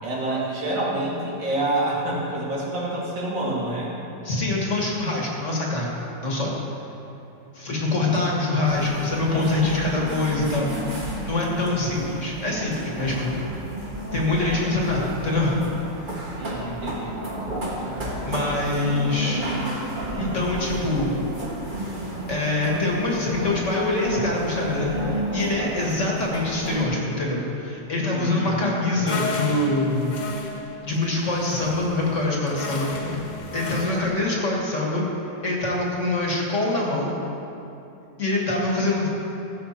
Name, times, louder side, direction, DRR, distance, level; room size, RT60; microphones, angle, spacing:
voice 1, 0.0-3.9 9.3-9.9 16.4-17.2 28.1-29.6, right 1 dB, 80° right, -5 dB, 2.8 m, -28 dB
voice 2, 4.2-5.9 6.2-6.5 7.5-13.4 14.1-15.6 18.3-19.4 20.1-21.2 22.3-30.2 30.8-32.9 33.5-35.1 35.4-37.1 38.2-39.1, left 2 dB, 45° left, -2 dB, 1.9 m, -24 dB
sound 1, 8.7-26.8, right 1 dB, 30° right, 1.4 m, -32 dB
sound 2, 29.1-34.2, left 3 dB, 65° left, 0.4 m, -33 dB
15.0 x 7.6 x 4.4 m, 2.8 s
omnidirectional pair, 1.9 m